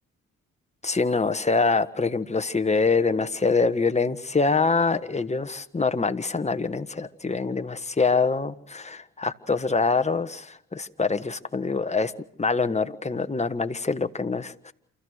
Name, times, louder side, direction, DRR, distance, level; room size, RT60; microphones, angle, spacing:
voice 1, 0.8-12.1 12.4-14.7, left 4 dB, 20° left, 9 dB, 1.5 m, -25 dB
28.5 x 14.5 x 6.5 m, 0.70 s
supercardioid pair, 50°, 32 cm